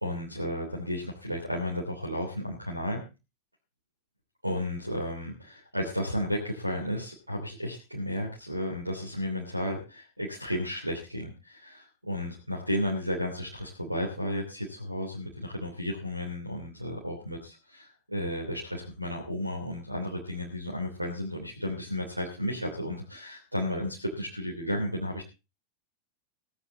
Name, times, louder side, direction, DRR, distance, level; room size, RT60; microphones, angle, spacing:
voice 1, 0.0-3.0 4.4-25.3, equal, 85° right, 0 dB, 3.1 m, -33 dB
17.0 x 11.0 x 4.0 m, 0.30 s
figure-of-eight pair, 90°, 0 cm